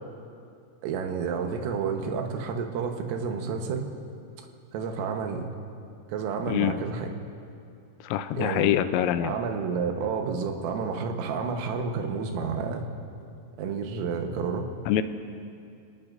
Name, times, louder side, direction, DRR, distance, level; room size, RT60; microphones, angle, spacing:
voice 1, 0.8-3.9 4.7-5.5 6.1-7.1 8.3-8.7 9.2-12.9 13.6-14.7, right 5 dB, 85° right, 3 dB, 3.9 m, -30 dB
voice 2, 8.0-9.4 14.9-15.0, left 11 dB, 90° left, 10 dB, 3.4 m, -25 dB
30.0 x 18.5 x 2.6 m, 2.4 s
omnidirectional pair, 5.8 m